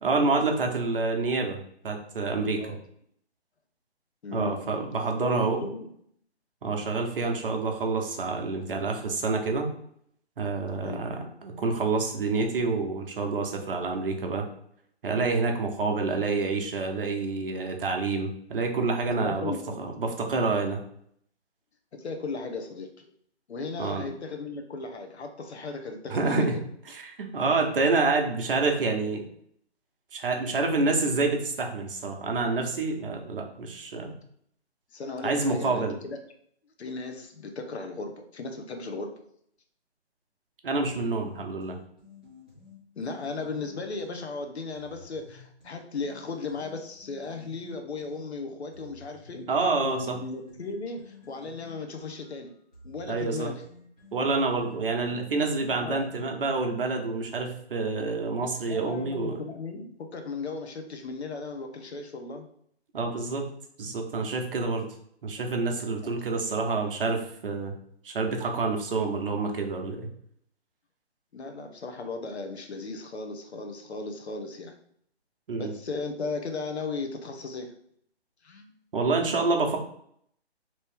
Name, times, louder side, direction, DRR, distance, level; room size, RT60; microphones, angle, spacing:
voice 1, 0.0-2.6 4.3-5.6 6.6-9.7 10.4-14.5 15.0-19.5 19.8-20.8 23.8-24.1 26.1-26.5 26.9-29.3 30.1-34.1 35.2-35.9 40.6-41.8 49.5-50.2 53.1-53.5 54.1-59.4 62.9-63.4 63.8-64.9 65.2-67.7 68.0-70.1 75.5-75.7 78.9-79.8, right 3 dB, 55° right, 3 dB, 0.7 m, -27 dB
voice 2, 4.2-4.6 5.2-5.9 10.6-11.4 19.2-19.8 21.9-23.1 23.5-26.7 34.9-36.2 36.8-39.1 43.0-49.5 49.8-52.5 52.8-53.6 55.8-56.1 58.7-62.5 66.0-66.2 71.3-74.8 75.6-77.7 78.4-78.7, left 3 dB, 75° left, 5 dB, 0.8 m, -36 dB
sound 1, 40.7-44.3 44.7-48.3 48.7-56.5, left 4 dB, 5° left, 0.4 m, -52 dB
3.0 x 2.7 x 3.4 m, 0.68 s
figure-of-eight pair, 150°, 33 cm